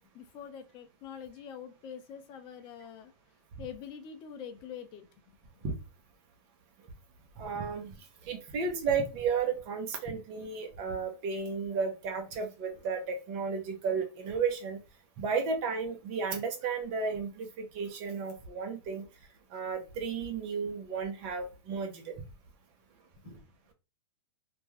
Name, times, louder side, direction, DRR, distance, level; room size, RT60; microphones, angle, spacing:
voice 1, 0.1-3.1 3.6-5.4 23.2-23.4, left 8 dB, 35° left, 7 dB, 0.5 m, -45 dB
voice 2, 7.4-8.0 8.2-14.8 15.2-19.0 19.5-22.2 23.2-23.4, right 5 dB, 45° right, 5 dB, 0.8 m, -33 dB
2.5 x 2.2 x 3.2 m, 0.29 s
hypercardioid pair, 125°, 14 cm